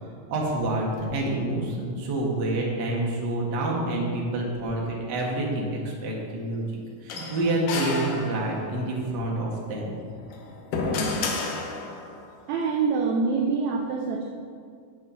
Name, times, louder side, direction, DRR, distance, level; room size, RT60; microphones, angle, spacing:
voice 1, 0.0-6.6 7.0-10.0, right 1 dB, 45° right, -2 dB, 1.5 m, -28 dB
sound 1, 7.1-8.8 10.2-12.2, left 3 dB, 85° left, 2.5 m, -31 dB
voice 2, 12.5-14.3, right 4 dB, 75° right, 2 dB, 1.8 m, -25 dB
7.6 x 7.4 x 5.5 m, 2.2 s
omnidirectional pair, 3.8 m